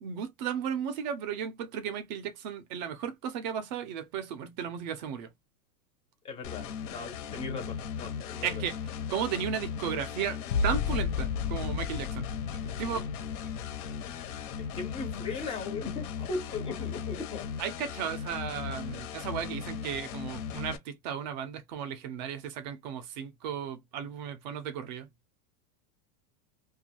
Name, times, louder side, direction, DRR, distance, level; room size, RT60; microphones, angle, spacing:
voice 1, 0.0-5.3 8.4-8.8 9.1-12.3 12.6-13.1 17.6-25.1, right 8 dB, 30° right, 0.5 m, -35 dB
voice 2, 6.2-8.6 13.5-13.6 14.1-17.5, left 4 dB, 15° left, 0.6 m, -38 dB
sound 1, 6.4-20.8, left 7 dB, 60° left, 0.9 m, -38 dB
sound 2, 10.5-15.9 16.4-17.0, left 5 dB, 85° left, 0.6 m, -34 dB
2.5 x 2.3 x 2.8 m
supercardioid pair, 165°, 44 cm